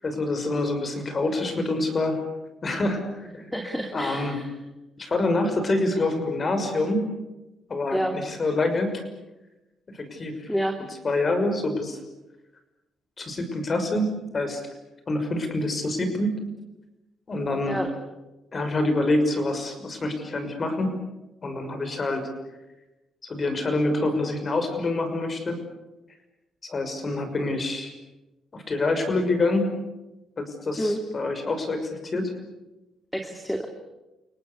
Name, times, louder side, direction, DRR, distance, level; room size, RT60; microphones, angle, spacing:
voice 1, 0.0-2.2 2.6-3.4 3.9-4.4 5.0-7.1 7.7-8.9 9.9-10.5 11.0-12.0 13.2-14.6 15.1-16.3 17.3-17.8 18.5-20.9 21.4-22.3 23.2-25.6 26.6-27.9 28.5-29.7 30.4-32.3, left 2 dB, 35° left, 7 dB, 6.2 m, -26 dB
voice 2, 3.5-4.5 7.9-8.2 10.5-10.8 17.7-17.9 30.8-31.0 33.1-33.7, equal, 5° left, 4 dB, 2.6 m, -28 dB
29.5 x 19.0 x 8.4 m, 1.0 s
cardioid pair, 90°, 0 cm